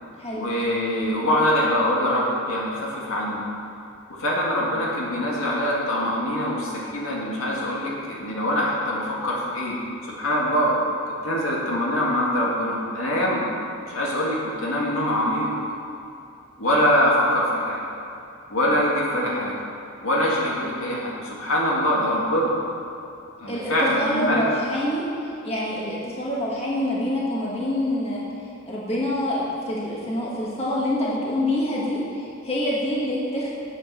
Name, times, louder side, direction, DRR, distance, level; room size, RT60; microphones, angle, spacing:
voice 1, 0.3-3.5 4.2-9.8 10.0-10.8 11.1-13.5 13.9-15.5 16.6-17.8 18.5-19.5 20.0-22.5 23.4-24.5, equal, 75° left, -4 dB, 2.2 m, -23 dB
voice 2, 23.5-25.0 25.4-28.2 28.7-33.5, left 1 dB, 30° left, -5 dB, 1.8 m, -26 dB
9.1 x 7.9 x 6.5 m, 2.7 s
head